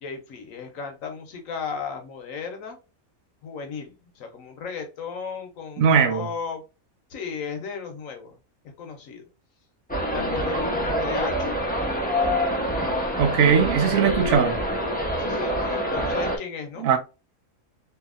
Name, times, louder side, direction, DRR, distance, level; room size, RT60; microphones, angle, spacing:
voice 1, 0.0-2.8 3.4-6.6 7.1-8.4 8.8-9.2 10.1-11.6 15.2-16.9, left 6 dB, 70° left, 1.1 m, -35 dB
voice 2, 5.8-6.3 13.2-14.6 16.8-17.0, right 6 dB, 75° right, 1.0 m, -19 dB
sound 1, 9.9-16.4, equal, 10° left, 0.4 m, -26 dB
2.7 x 2.7 x 2.4 m
omnidirectional pair, 1.5 m